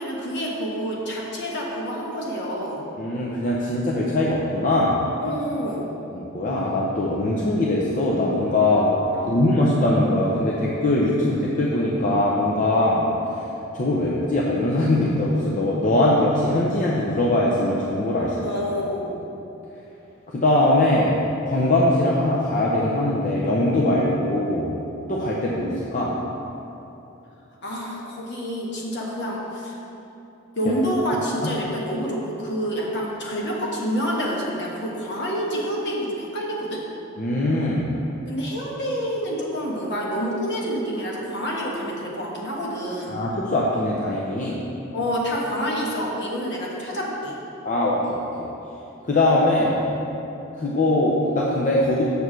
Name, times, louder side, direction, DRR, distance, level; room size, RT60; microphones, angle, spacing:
voice 1, 0.0-2.8 5.2-5.9 9.1-9.6 18.4-19.1 27.6-29.8 30.6-36.8 38.3-43.2 44.9-47.4, equal, 60° left, -3 dB, 1.3 m, -28 dB
voice 2, 3.0-5.0 6.1-8.9 9.3-13.1 13.7-18.4 20.3-24.7 25.1-26.2 31.4-31.5 37.2-37.9 43.1-44.6 47.6-48.5 49.1-49.9 50.6-52.1, left 1 dB, 40° left, -4 dB, 0.7 m, -21 dB
6.8 x 4.7 x 6.2 m, 3.0 s
head